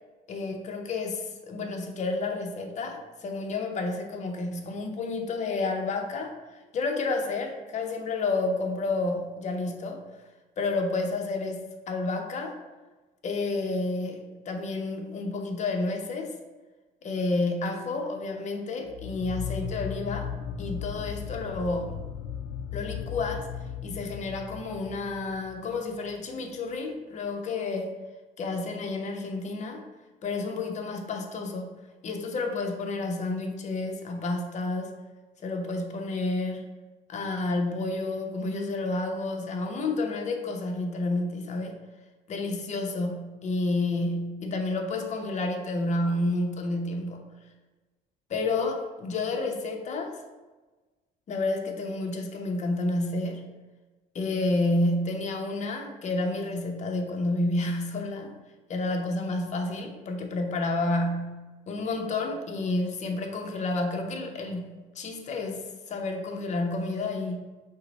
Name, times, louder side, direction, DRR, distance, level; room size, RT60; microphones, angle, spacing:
voice 1, 0.3-10.0 10.6-12.6 13.2-14.2 14.4-16.3 17.0-20.3 20.6-22.0 22.7-23.5 23.8-27.9 28.4-29.8 30.2-31.7 32.0-34.9 35.4-36.6 37.1-41.8 42.3-47.2 48.3-50.2 51.3-53.4 54.1-58.3 58.7-61.4 61.7-65.6 65.9-67.4, left 2 dB, 45° left, 4 dB, 0.7 m, -30 dB
sound 1, 18.9-26.2, left 7 dB, 90° left, 0.4 m, -37 dB
5.5 x 2.1 x 4.1 m, 1.2 s
cardioid pair, 110°, 17 cm